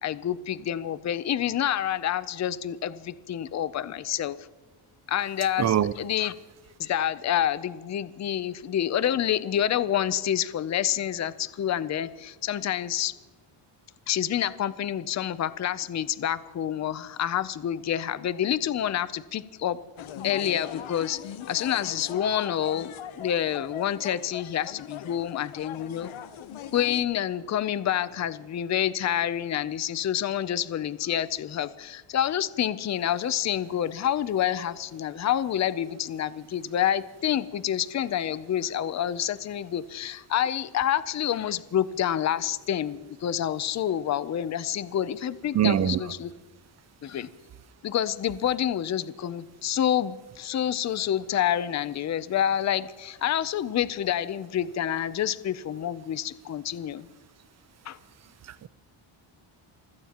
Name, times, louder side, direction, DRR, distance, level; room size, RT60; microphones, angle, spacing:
voice 1, 0.0-4.4 5.1-6.3 6.8-13.1 14.1-19.8 20.2-21.2 21.5-26.1 26.7-46.3 47.0-47.3 47.8-57.1 57.9-58.0, left 10 dB, 35° left, 0.5 m, -28 dB
voice 2, 5.6-5.9 45.5-46.0 58.6-58.7, right 10 dB, 35° right, 0.4 m, -22 dB
sound 1, 20.0-27.0, left 10 dB, 70° left, 0.9 m, -40 dB
28.5 x 16.5 x 2.9 m
wide cardioid pair, 150°, 50 cm